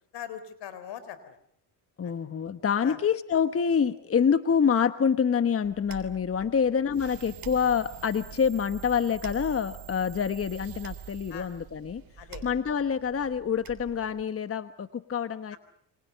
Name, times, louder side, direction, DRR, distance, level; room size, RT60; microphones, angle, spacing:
voice 1, 0.1-1.4 2.0-2.1 2.8-3.0 11.3-11.5 12.2-12.5 15.5-15.6, left 10 dB, 75° left, 13 dB, 4.2 m, -41 dB
voice 2, 2.0-12.0 12.4-15.6, left 7 dB, 35° left, 12 dB, 1.2 m, -26 dB
sound 1, 5.6-14.2, right 7 dB, 50° right, 3.5 m, -48 dB
sound 2, 6.9-12.3, right 16 dB, 75° right, 1.3 m, -46 dB
29.0 x 25.0 x 6.8 m, 0.64 s
cardioid pair, 90°, 42 cm